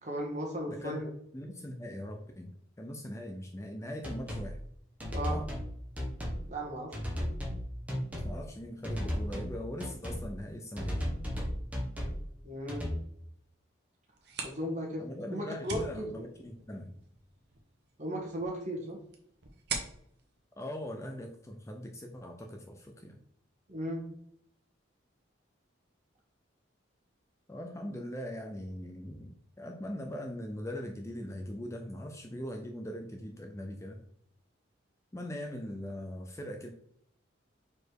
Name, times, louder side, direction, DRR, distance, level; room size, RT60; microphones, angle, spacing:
voice 1, 0.0-1.1 5.1-5.4 6.5-6.9 12.4-12.9 14.4-15.0 15.3-16.1 18.0-19.0 23.7-24.1, equal, 35° right, 0 dB, 1.6 m, -36 dB
voice 2, 0.7-1.0 1.3-4.6 5.3-5.5 8.2-11.1 15.0-16.9 20.6-23.2 27.5-34.0 35.1-36.7, left 1 dB, 15° left, 3 dB, 0.5 m, -41 dB
sound 1, 4.0-4.5 5.0-5.7 6.0-6.4 6.9-7.6 7.9-8.3 8.8-9.5 9.8-10.2 10.8-12.2 12.7-12.9, equal, 5° right, 1.3 m, -34 dB
sound 2, 14.1-21.6, right 4 dB, 55° right, 1.1 m, -44 dB
4.8 x 4.4 x 4.7 m, 0.70 s
head